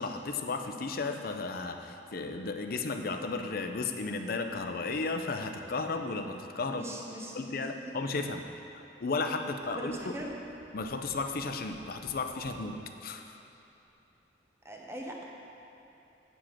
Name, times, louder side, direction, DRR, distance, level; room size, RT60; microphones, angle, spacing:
voice 1, 0.0-6.8 7.3-8.4 9.0-10.2 10.7-13.4, left 3 dB, 55° left, 6 dB, 0.5 m, -34 dB
voice 2, 6.7-7.4 7.7-8.1 9.7-10.3 14.6-15.2, right 1 dB, 15° right, -1 dB, 0.9 m, -41 dB
Tap, 9.9-12.7 13.5-13.6 13.9-14.0, equal, 30° left, 1.1 m, -55 dB
9.0 x 5.0 x 5.7 m, 2.9 s
head